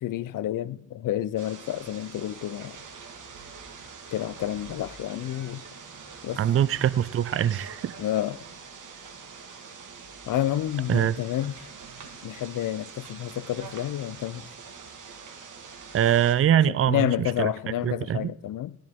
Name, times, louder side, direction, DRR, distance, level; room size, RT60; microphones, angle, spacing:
voice 1, 0.0-2.8 4.1-5.6 6.2-6.4 8.0-8.4 10.3-11.7 12.2-14.5 16.9-18.8, left 12 dB, 80° left, 0.6 m, -29 dB
sound 1, 1.4-16.3, right 5 dB, 70° right, 1.9 m, -44 dB
voice 2, 6.4-8.0 10.9-11.1 15.9-17.5 17.8-18.3, right 10 dB, 45° right, 0.4 m, -23 dB
13.5 x 11.5 x 3.6 m
wide cardioid pair, 115°, 31 cm